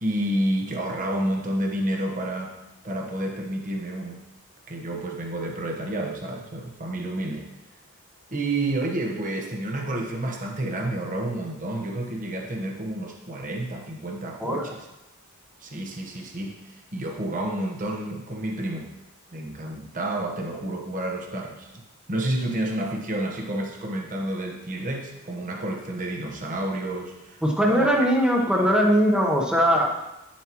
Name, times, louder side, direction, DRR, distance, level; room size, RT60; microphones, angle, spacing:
voice 1, 0.0-2.6 2.8-4.2 4.7-7.5 8.3-14.8 15.6-18.9 19.3-21.7 22.1-27.9 28.6-28.7, right 1 dB, 35° right, 1 dB, 1.1 m, -30 dB
voice 2, 27.4-29.9, equal, 5° right, 0 dB, 1.0 m, -20 dB
10.0 x 7.3 x 3.1 m, 0.96 s
head